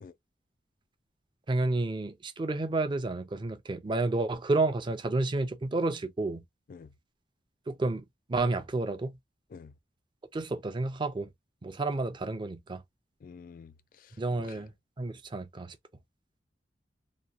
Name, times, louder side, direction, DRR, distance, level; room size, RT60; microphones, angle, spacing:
voice 1, 1.5-6.4 7.7-9.2 10.3-11.3 11.6-12.8 14.2-15.8, right 2 dB, 25° right, 0.4 m, -30 dB
voice 2, 13.2-14.6, left 5 dB, 50° left, 0.3 m, -49 dB
2.9 x 2.2 x 2.4 m
head